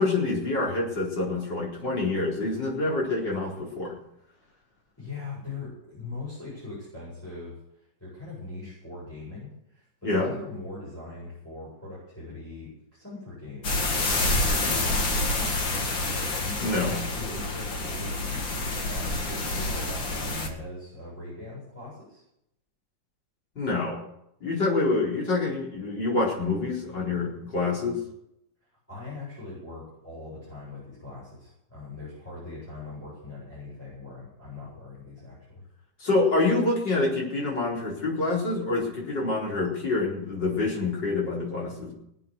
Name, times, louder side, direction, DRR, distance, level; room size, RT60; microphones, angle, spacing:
voice 1, 0.0-4.0 10.0-10.3 16.6-17.0 23.6-24.0 24.4-28.0 36.0-41.9, left 3 dB, 70° left, -3 dB, 5.2 m, -26 dB
voice 2, 5.0-22.2 28.9-35.6, left 3 dB, 5° left, -8 dB, 7.9 m, -41 dB
sound 1, 13.6-20.5, left 2 dB, 85° left, 3.0 m, -28 dB
22.0 x 8.4 x 7.0 m, 0.78 s
omnidirectional pair, 2.0 m